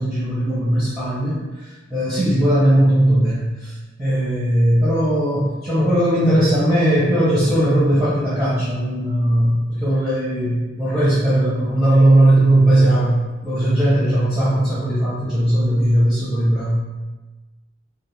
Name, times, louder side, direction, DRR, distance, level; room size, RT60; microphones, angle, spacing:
voice 1, 0.0-16.8, right 1 dB, ahead, -11 dB, 0.7 m, -18 dB
2.4 x 2.4 x 3.1 m, 1.2 s
head